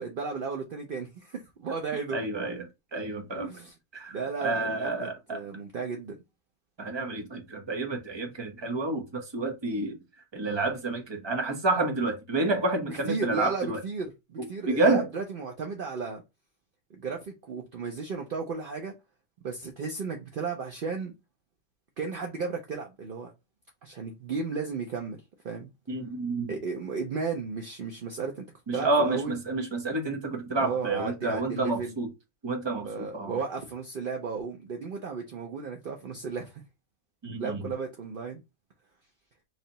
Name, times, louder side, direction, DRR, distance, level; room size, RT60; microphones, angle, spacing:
voice 1, 0.0-2.2 3.4-3.7 4.1-6.2 12.9-16.2 16.9-18.9 19.4-21.1 22.0-23.3 23.8-25.2 25.4-25.7 26.5-28.5 28.7-29.4 30.6-31.9 32.7-36.6 37.4-38.4, right 4 dB, 60° right, 0.5 m, -34 dB
voice 2, 2.1-3.5 3.9-5.4 6.8-10.0 10.3-13.8 14.4-15.1 25.9-26.6 28.7-32.1 32.4-33.4 37.2-37.6, right 2 dB, 25° right, 0.7 m, -29 dB
3.2 x 2.8 x 3.9 m
omnidirectional pair, 1.6 m